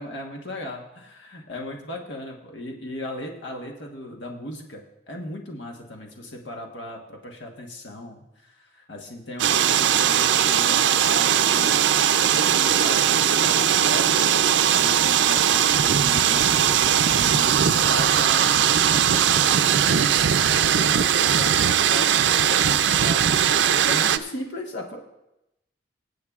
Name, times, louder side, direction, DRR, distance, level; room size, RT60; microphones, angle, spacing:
voice 1, 0.0-11.7 12.5-25.0, left 1 dB, 80° left, 1 dB, 1.2 m, -37 dB
sound 1, 9.4-24.2, right 9 dB, 85° right, 0.5 m, -19 dB
22.5 x 8.4 x 2.4 m, 0.89 s
head